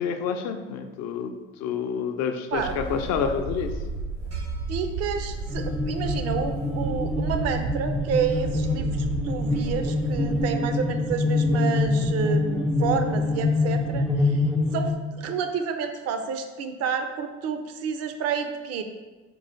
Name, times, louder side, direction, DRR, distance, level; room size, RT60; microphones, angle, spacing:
voice 1, 0.0-3.7, left 6 dB, 45° left, 7 dB, 0.6 m, -28 dB
sound 1, 2.5-10.4, right 3 dB, 90° right, 1.5 m, -33 dB
voice 2, 4.7-14.4 14.7-18.8, right 6 dB, 45° right, 7 dB, 0.6 m, -30 dB
sound 2, 5.5-14.9, left 2 dB, ahead, 0.4 m, -25 dB
4.6 x 2.4 x 4.4 m, 1.3 s
hypercardioid pair, 65°, 36 cm